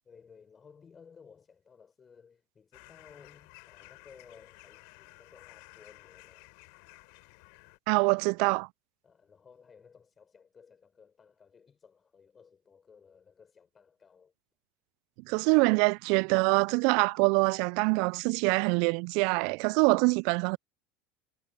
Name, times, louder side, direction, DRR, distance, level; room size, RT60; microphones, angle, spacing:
voice 1, 0.0-6.5 9.0-14.3, left 6 dB, 30° left, 6.6 m, -57 dB
sound 1, 2.7-7.8, left 40 dB or more, 65° left, 6.5 m, -54 dB
voice 2, 7.9-8.7 15.3-20.6, right 33 dB, 60° right, 0.5 m, -25 dB
hypercardioid pair, 75°, 0 cm